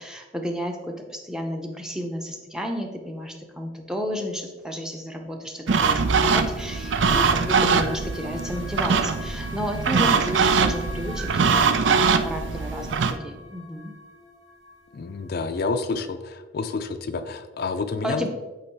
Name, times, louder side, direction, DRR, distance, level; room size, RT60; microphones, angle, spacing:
voice 1, 0.0-13.9 18.0-18.3, equal, 5° right, 3 dB, 0.6 m, -32 dB
sound 1, 5.7-13.1, right 5 dB, 80° right, 0.5 m, -22 dB
sound 2, 6.6-15.8, left 2 dB, 20° right, 1.5 m, -43 dB
voice 2, 14.9-18.3, left 4 dB, 55° left, 8 dB, 0.4 m, -29 dB
8.4 x 3.0 x 4.6 m, 1.2 s
head